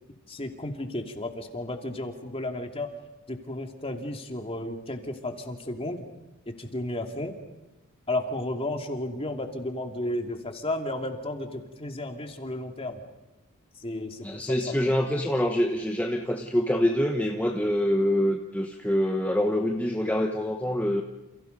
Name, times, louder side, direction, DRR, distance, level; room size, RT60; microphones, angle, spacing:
voice 1, 0.3-2.9 3.3-6.0 6.6-7.3 8.1-13.0 13.8-14.6, left 1 dB, 25° left, 4 dB, 2.7 m, -33 dB
voice 2, 14.2-21.0, equal, 5° left, 2 dB, 1.2 m, -25 dB
29.5 x 28.5 x 5.4 m, 1.0 s
head